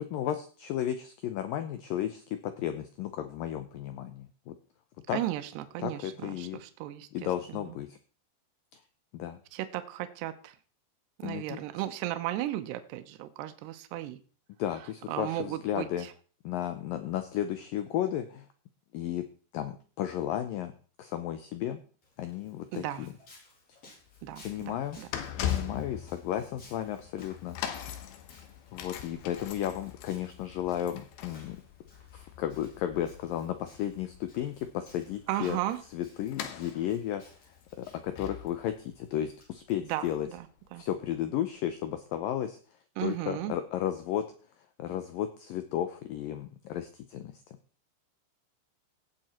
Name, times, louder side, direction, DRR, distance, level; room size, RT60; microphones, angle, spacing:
voice 1, 0.0-4.6 5.1-5.2 5.8-6.6 7.1-8.0 9.1-9.4 11.2-11.6 14.6-16.1 16.4-18.5 18.9-19.3 19.5-20.7 21.0-21.8 22.2-23.1 24.4-25.0 25.4-27.6 28.7-31.6 32.1-35.6 35.9-37.2 37.8-40.3 40.8-42.6 43.0-44.3 44.8-47.6, left 11 dB, 90° left, 9 dB, 2.0 m, -33 dB
voice 2, 5.1-7.8 9.5-10.6 11.2-14.2 15.1-16.1 22.7-23.1 24.2-25.1 35.3-35.8 39.9-40.5 40.7-40.8 43.0-43.5, right 14 dB, 75° right, 9 dB, 2.8 m, -35 dB
Walk footsteps, 22.0-39.4, left 2 dB, 35° left, 4.9 m, -58 dB
sound 1, 24.0-41.0 41.7-41.8, left 10 dB, 70° left, 2.8 m, -41 dB
17.0 x 7.7 x 4.4 m, 0.40 s
omnidirectional pair, 5.2 m